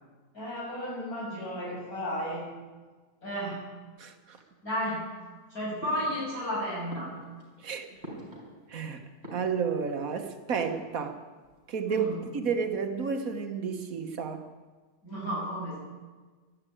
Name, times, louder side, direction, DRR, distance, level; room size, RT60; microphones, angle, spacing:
voice 1, 0.3-2.4 3.2-3.6 4.6-5.0 5.5-7.1 11.9-12.2 15.0-15.8, equal, 65° left, -6 dB, 7.5 m, -33 dB
voice 2, 4.0-4.4 7.6-7.9 8.7-9.0 9.3-11.2 11.7-12.1 12.3-14.4, right 6 dB, 60° right, 6 dB, 1.6 m, -31 dB
sound 1, 5.8-6.5 6.9-8.8 9.1-10.0 10.6-11.2 11.4-11.5 11.8-12.5, equal, 40° right, 5.2 m, -45 dB
12.5 x 12.5 x 8.7 m, 1.4 s
omnidirectional pair, 1.7 m